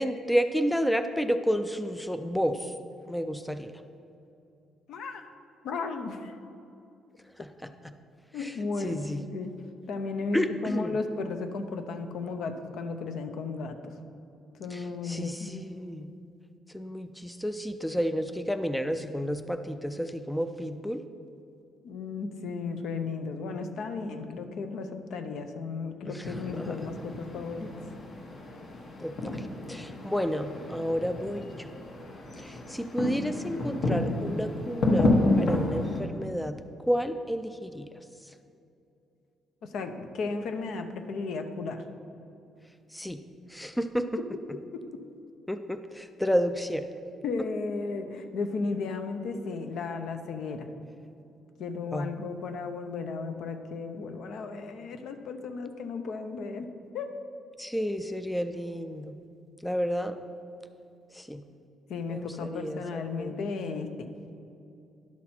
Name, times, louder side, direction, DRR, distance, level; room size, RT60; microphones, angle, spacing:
voice 1, 0.0-2.7 3.1-3.7 7.4-7.9 8.4-8.5 8.8-9.2 10.3-11.0 14.7-16.1 16.7-21.0 26.1-26.3 26.5-26.9 29.0-29.4 29.7-31.7 32.4-37.9 42.9-43.2 43.5-44.1 45.5-46.9 51.9-52.1 57.6-59.2 59.6-60.1 61.1-61.4 62.1-63.4, equal, 5° left, 9 dB, 0.3 m, -31 dB
voice 2, 4.9-5.2 5.6-6.4 8.3-9.0 9.3-9.5 9.9-13.8 14.6-15.5 21.8-27.7 39.6-41.8 44.7-44.8 47.2-50.7 51.6-56.7 56.9-57.1 61.9-64.1, left 4 dB, 70° left, 7 dB, 0.7 m, -34 dB
sound 1, 26.2-36.0, left 2 dB, 50° left, 1.2 m, -30 dB
11.0 x 6.0 x 4.3 m, 2.7 s
cardioid pair, 130°, 0 cm